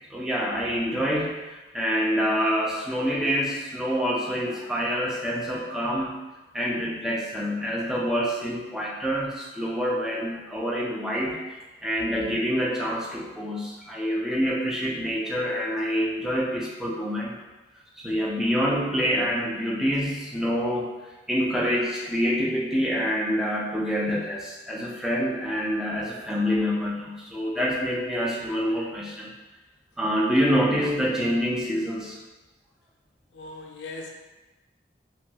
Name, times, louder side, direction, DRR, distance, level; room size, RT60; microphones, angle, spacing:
voice 1, 0.1-6.2 6.5-17.4 18.0-20.9 21.3-29.3 30.0-32.2, equal, ahead, -4 dB, 0.3 m, -26 dB
voice 2, 33.3-34.1, left 3 dB, 75° left, 0 dB, 0.5 m, -39 dB
2.9 x 2.3 x 2.8 m, 1.1 s
head